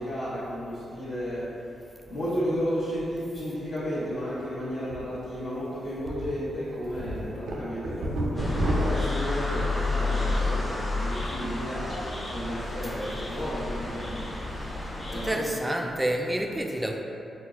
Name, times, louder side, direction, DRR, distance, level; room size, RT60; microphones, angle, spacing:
voice 1, 0.0-1.6 2.1-8.1 8.3-14.6 15.1-15.5, equal, 70° left, -13 dB, 0.8 m, -33 dB
sound 1, 4.9-5.0 5.4-5.5 6.0-6.3 6.7-10.5 10.9-11.3, right 1 dB, 80° right, 0.4 m, -31 dB
sound 2, 8.4-15.4, left 3 dB, 35° left, 0.7 m, -31 dB
voice 2, 15.1-17.0, right 1 dB, 15° right, 2 dB, 0.3 m, -29 dB
4.2 x 2.0 x 2.4 m, 2.7 s
supercardioid pair, 45°, 0 cm